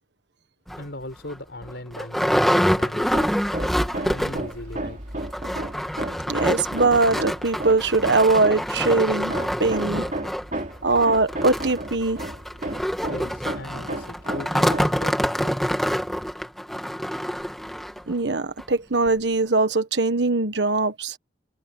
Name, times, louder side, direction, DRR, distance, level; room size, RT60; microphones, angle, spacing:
sound 1, 0.7-0.8 1.3-1.4 1.6-4.6 4.8-4.9 5.2-18.0 18.6-18.7 19.1-19.2, equal, ahead, 2.1 m, -26 dB
voice 1, 0.8-3.2 4.0-5.0 13.0-15.6, left 1 dB, 75° left, 4.2 m, -38 dB
Hammer, 3.0-15.1, right 1 dB, 45° right, 3.5 m, -34 dB
voice 2, 6.3-9.3 9.6-10.0 10.8-12.2 18.1-21.1, right 3 dB, 75° right, 1.4 m, -21 dB
head